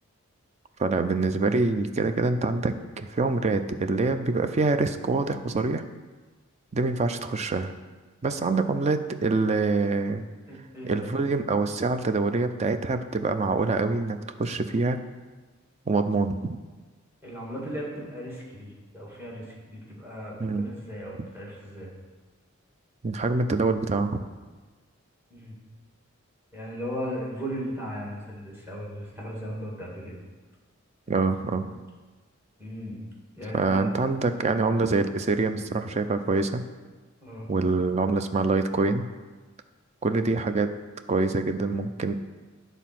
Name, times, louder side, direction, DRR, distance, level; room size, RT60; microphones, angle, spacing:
voice 1, 0.8-5.8 6.7-7.7 8.2-10.2 10.8-15.0 15.9-16.4 20.4-20.7 23.0-24.2 31.1-31.7 33.5-36.6 37.5-39.1 40.0-40.7 41.1-42.1, right 3 dB, 35° right, 9 dB, 0.4 m, -25 dB
voice 2, 10.5-11.1 17.2-21.9 25.3-25.5 26.5-30.2 32.6-33.0 33.3-33.9 37.2-37.5, equal, 10° right, -4 dB, 1.9 m, -37 dB
9.3 x 4.0 x 5.9 m, 1.3 s
head